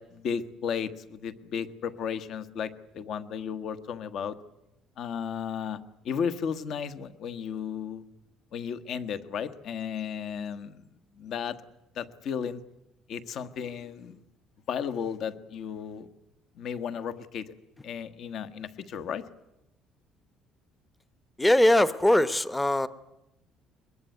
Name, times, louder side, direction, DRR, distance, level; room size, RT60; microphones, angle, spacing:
voice 1, 0.0-4.4 5.0-8.0 8.5-10.9 11.2-11.6 11.9-12.6 13.1-14.2 14.7-16.1 16.5-17.5 17.8-19.2, left 7 dB, 50° left, 13 dB, 1.3 m, -34 dB
voice 2, 21.4-22.9, left 1 dB, 10° left, 15 dB, 0.9 m, -21 dB
22.0 x 21.5 x 9.4 m, 0.90 s
cardioid pair, 155°, 0 cm